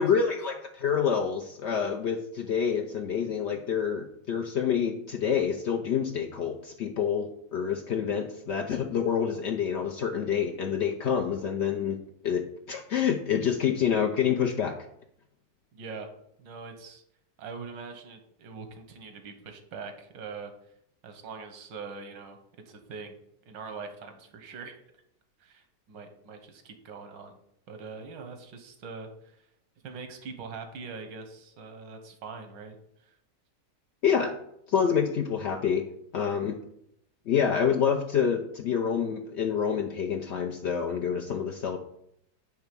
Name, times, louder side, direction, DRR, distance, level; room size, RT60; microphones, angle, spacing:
voice 1, 0.0-12.0 12.2-14.7 34.0-34.3 34.7-35.8 36.1-36.6 37.3-41.8, left 7 dB, 65° left, 3 dB, 0.6 m, -27 dB
voice 2, 15.7-16.1 16.4-17.0 17.4-20.5 21.0-22.4 22.7-23.2 23.5-24.8 25.4-27.4 27.7-29.5 29.8-32.8 33.1-33.2, right 4 dB, 85° right, 7 dB, 1.7 m, -42 dB
9.4 x 3.5 x 6.8 m, 0.74 s
omnidirectional pair, 1.9 m